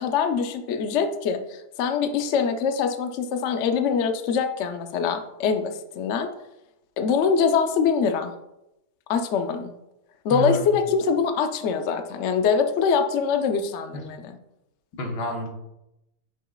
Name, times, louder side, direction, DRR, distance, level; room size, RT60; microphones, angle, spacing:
voice 1, 0.0-6.3 7.0-8.3 9.1-9.7 10.2-14.4, left 6 dB, 60° left, 6 dB, 0.8 m, -24 dB
voice 2, 10.3-10.7 13.9-14.0 15.0-15.5, right 1 dB, 90° left, 2 dB, 1.8 m, -28 dB
9.6 x 6.1 x 2.3 m, 0.90 s
omnidirectional pair, 1.7 m